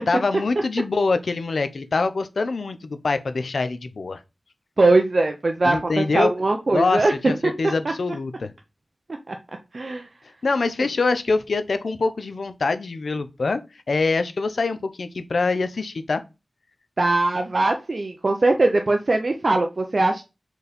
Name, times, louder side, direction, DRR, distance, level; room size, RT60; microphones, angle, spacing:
voice 1, 0.1-4.2 5.6-6.3 6.7-8.5 10.4-13.6 13.9-16.2, left 3 dB, 80° left, 0.7 m, -24 dB
voice 2, 4.8-7.9 9.3-9.4 9.7-10.1 17.0-20.2, right 2 dB, 55° right, 0.7 m, -21 dB
4.5 x 4.1 x 5.1 m
wide cardioid pair, 90°, 0 cm